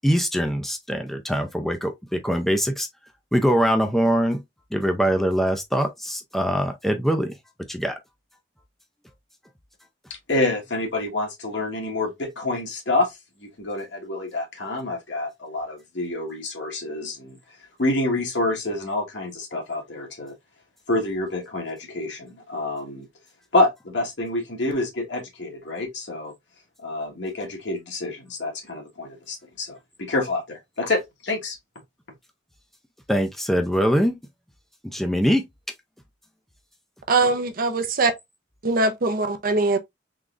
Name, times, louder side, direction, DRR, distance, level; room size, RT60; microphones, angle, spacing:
voice 1, 0.0-2.9 3.3-4.4 4.7-7.4 7.7-8.0 33.1-34.2 34.8-35.4, equal, ahead, 0.4 m, -23 dB
voice 2, 10.3-17.4 17.8-20.3 20.9-23.1 23.5-26.3 26.8-31.6, left 2 dB, 75° left, 1.3 m, -27 dB
voice 3, 37.1-38.1 38.6-39.8, right 3 dB, 50° right, 0.6 m, -21 dB
3.7 x 3.1 x 2.4 m
head